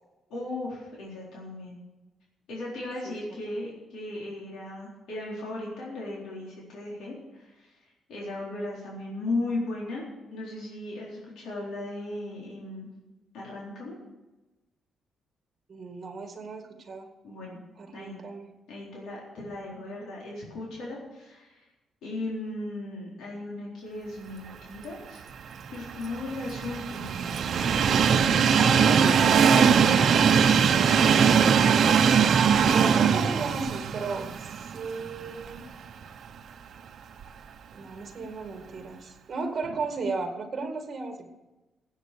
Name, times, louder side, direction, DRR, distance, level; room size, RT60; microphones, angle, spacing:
voice 1, 0.3-1.8 2.5-7.7 8.1-10.0 10.3-12.9 13.3-14.0 17.2-17.6 17.9-18.2 18.7-21.7 22.0-25.2 25.7-27.4 28.5-29.2 31.0-31.4, left 2 dB, 85° left, -5 dB, 4.1 m, -36 dB
voice 2, 15.7-17.1 17.8-18.5 28.5-29.6 31.1-31.9 32.7-35.6 37.7-41.3, right 4 dB, 30° right, 5 dB, 2.0 m, -35 dB
Train, 25.5-35.6 36.0-36.1 37.2-37.3, right 7 dB, 50° right, 0.9 m, -21 dB
17.0 x 8.2 x 6.9 m, 1.1 s
cardioid pair, 160°, 0 cm